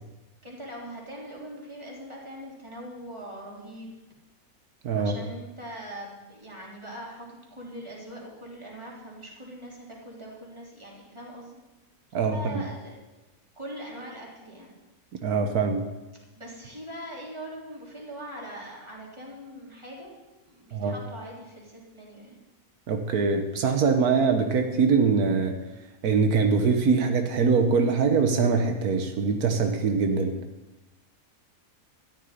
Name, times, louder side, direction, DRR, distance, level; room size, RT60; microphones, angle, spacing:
voice 1, 0.4-3.9 4.9-11.6 12.1-12.9 13.6-14.7 16.4-20.1 20.4-22.4, right 1 dB, 20° right, -4 dB, 3.6 m, -41 dB
voice 2, 4.8-5.1 12.1-12.6 15.2-15.8 20.7-21.0 22.9-25.6 26.0-30.4, right 5 dB, 85° right, 5 dB, 1.5 m, -23 dB
13.5 x 6.6 x 9.9 m, 1.1 s
omnidirectional pair, 1.6 m